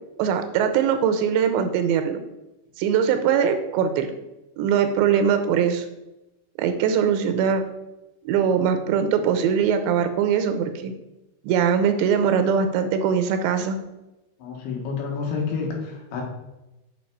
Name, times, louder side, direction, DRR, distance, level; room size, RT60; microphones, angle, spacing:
voice 1, 0.2-2.2 2.8-4.1 4.6-5.9 6.6-7.6 8.3-10.9 11.4-13.8, right 7 dB, 85° right, 8 dB, 3.0 m, -21 dB
voice 2, 14.4-16.2, left 5 dB, 85° left, 0 dB, 4.1 m, -29 dB
8.4 x 5.9 x 4.7 m, 0.97 s
omnidirectional pair, 5.1 m